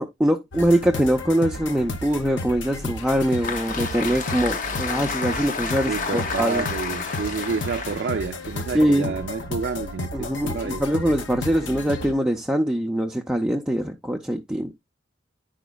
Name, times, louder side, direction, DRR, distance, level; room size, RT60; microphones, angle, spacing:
voice 1, 0.0-6.7 8.7-9.2 10.1-14.7, equal, 5° right, 0.5 m, -23 dB
sound 1, 0.5-12.1, left 2 dB, 70° left, 1.0 m, -33 dB
Applause, 3.0-9.3, left 4 dB, 45° left, 0.8 m, -31 dB
voice 2, 5.9-10.9, right 5 dB, 60° right, 0.4 m, -29 dB
10.5 x 5.0 x 2.2 m
head